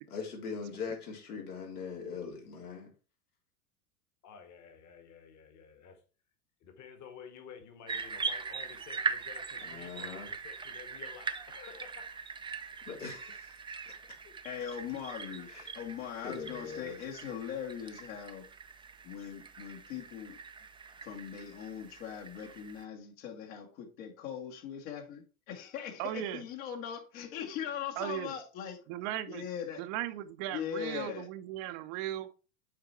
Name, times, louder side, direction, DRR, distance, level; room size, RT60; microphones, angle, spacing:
voice 1, 0.1-2.9 9.6-10.3 12.8-13.6 13.8-14.2 15.5-15.7 16.2-17.0, left 5 dB, 80° left, 3.3 m, -41 dB
voice 2, 4.2-6.0 6.6-12.2 14.2-14.4 14.9-15.0, left 7 dB, 40° left, 1.8 m, -52 dB
sound 1, 7.9-22.8, right 5 dB, 10° right, 0.5 m, -41 dB
voice 3, 14.4-15.5 15.7-18.4 19.0-20.4 21.0-28.8 29.3-29.8 30.5-31.3, left 8 dB, 60° left, 2.3 m, -40 dB
voice 4, 26.0-26.4 28.0-28.3 28.9-29.4 29.8-32.3, right 12 dB, 50° right, 0.8 m, -37 dB
7.5 x 4.5 x 4.3 m
hypercardioid pair, 95°, 45 cm